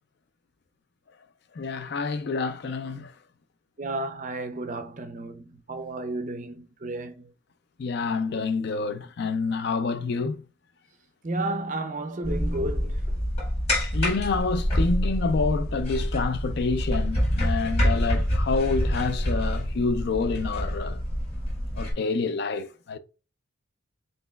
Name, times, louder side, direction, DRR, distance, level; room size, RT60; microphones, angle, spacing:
voice 1, 1.6-3.1 7.8-10.4 13.9-21.0 21.8-23.0, left 4 dB, 50° left, 0.4 m, -28 dB
voice 2, 3.8-7.3 11.2-13.2, right 2 dB, 35° right, 0.5 m, -32 dB
sound 1, 12.2-21.9, equal, 30° left, 1.6 m, -27 dB
4.1 x 3.8 x 2.3 m
head